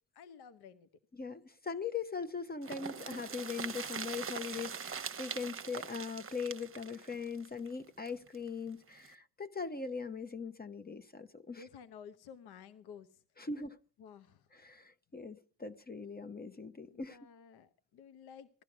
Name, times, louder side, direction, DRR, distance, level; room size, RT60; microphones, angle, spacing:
voice 1, 0.1-0.9 11.5-13.2 14.0-14.5 16.9-18.5, left 7 dB, 70° left, 1.0 m, -53 dB
voice 2, 1.2-11.6 13.4-13.8 14.5-17.2, left 5 dB, 25° left, 0.8 m, -40 dB
sound 1, 2.6-8.4 8.7-8.8 9.0-9.1, right 6 dB, 30° right, 1.0 m, -42 dB
16.5 x 11.5 x 6.0 m
supercardioid pair, 70°, 41 cm